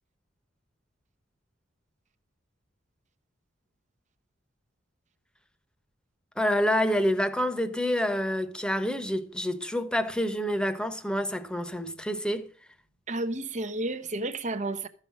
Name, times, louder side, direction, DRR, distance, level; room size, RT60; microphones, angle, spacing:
voice 1, 6.4-12.5, equal, 5° left, 1.1 m, -27 dB
voice 2, 13.1-14.9, right 2 dB, 40° right, 0.8 m, -31 dB
14.0 x 5.7 x 7.3 m
head